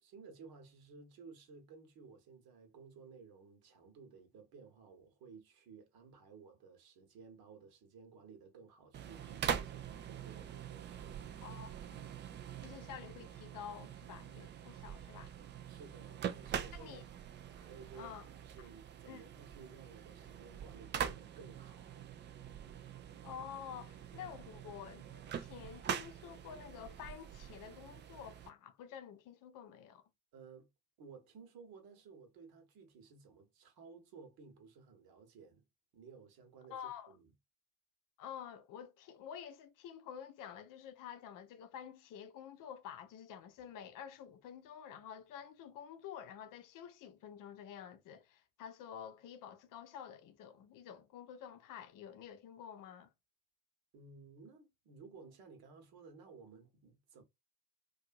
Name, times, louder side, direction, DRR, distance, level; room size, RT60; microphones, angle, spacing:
voice 1, 0.0-11.3 15.7-17.1 17.5-18.1 18.4-22.1 30.3-30.7 31.0-35.6 35.9-36.8 37.1-37.3 53.9-57.2, right 5 dB, 50° right, 1.1 m, -56 dB
sound 1, 8.9-28.5, right 9 dB, 25° right, 0.4 m, -44 dB
voice 2, 11.4-12.1 12.6-15.3 16.7-17.0 17.9-18.3 19.1-19.2 23.2-30.0 36.7-37.1 38.2-53.1, left 8 dB, 45° left, 0.7 m, -49 dB
2.6 x 2.4 x 2.4 m
figure-of-eight pair, 60°, 46 cm